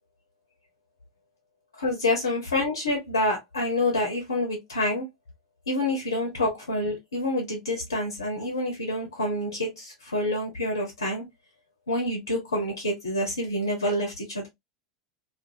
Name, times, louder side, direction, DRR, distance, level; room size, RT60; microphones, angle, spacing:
voice 1, 1.8-5.1 5.7-11.3 11.9-14.5, left 1 dB, 75° left, 1.0 m, -27 dB
2.6 x 2.5 x 2.6 m
figure-of-eight pair, 85°, 2 cm